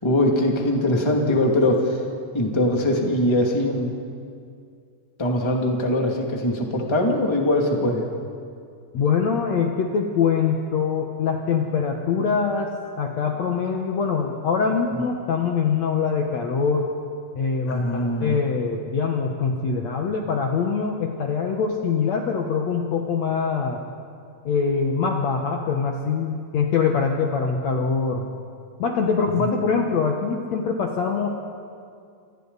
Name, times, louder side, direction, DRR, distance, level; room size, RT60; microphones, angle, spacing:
voice 1, 0.0-2.0 2.3-3.9 5.2-8.1 17.7-18.4, left 1 dB, 15° left, 0 dB, 1.1 m, -22 dB
voice 2, 8.9-12.7 13.0-16.9 17.3-23.8 24.4-28.3 28.8-31.3, left 5 dB, 90° left, 1 dB, 1.5 m, -23 dB
29.0 x 27.0 x 4.1 m, 2.3 s
omnidirectional pair, 5.1 m